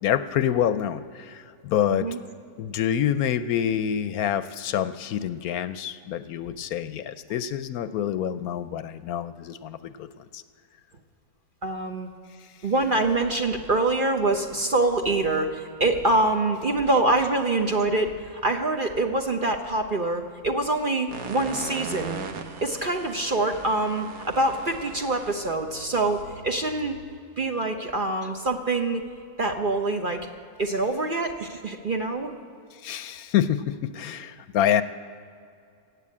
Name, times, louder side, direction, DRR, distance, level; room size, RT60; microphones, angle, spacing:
voice 1, 0.0-2.1 2.6-10.4 12.4-12.5 32.7-34.8, left 10 dB, 75° left, 12 dB, 1.0 m, -27 dB
voice 2, 11.6-12.1 12.6-22.2 22.6-26.2 26.4-27.0 27.4-29.0 29.4-30.2 30.6-32.4, right 2 dB, 40° right, 4 dB, 0.9 m, -25 dB
sound 1, 21.1-27.2, right 5 dB, 80° right, 1.6 m, -39 dB
16.5 x 8.7 x 8.5 m, 2.4 s
omnidirectional pair, 1.7 m